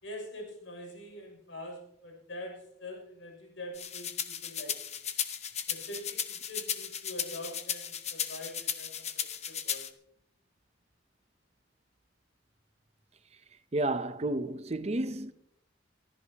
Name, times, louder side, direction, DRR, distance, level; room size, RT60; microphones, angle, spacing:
voice 1, 0.0-5.0 5.7-9.9, left 1 dB, 80° left, 7.1 m, -44 dB
sound 1, 3.7-9.9, left 9 dB, 35° left, 1.2 m, -35 dB
voice 2, 13.7-15.3, right 2 dB, 35° right, 0.7 m, -31 dB
24.0 x 14.5 x 3.0 m
head